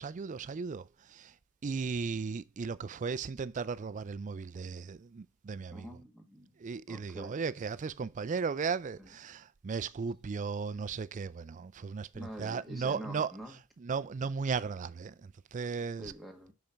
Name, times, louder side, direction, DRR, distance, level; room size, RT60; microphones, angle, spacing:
voice 1, 0.0-1.3 1.6-5.9 6.6-13.3 13.8-16.1, right 5 dB, 35° right, 0.3 m, -36 dB
voice 2, 5.7-6.5 6.9-7.4 9.0-9.1 12.1-13.5 16.0-16.5, equal, ahead, 1.6 m, -45 dB
5.8 x 5.4 x 5.0 m
head